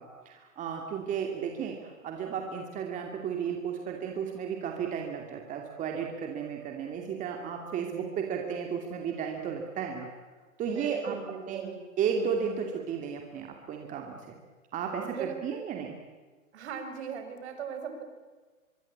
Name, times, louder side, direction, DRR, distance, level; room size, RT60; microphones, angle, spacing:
voice 1, 0.0-10.1 10.6-11.2 11.5-11.7 12.0-14.3 14.7-15.9, right 7 dB, 20° right, 2 dB, 2.5 m, -34 dB
voice 2, 10.7-11.8 14.9-15.4 16.5-18.0, right 6 dB, 50° right, 7 dB, 5.2 m, -39 dB
24.5 x 23.5 x 8.7 m, 1.4 s
hypercardioid pair, 145°, 41 cm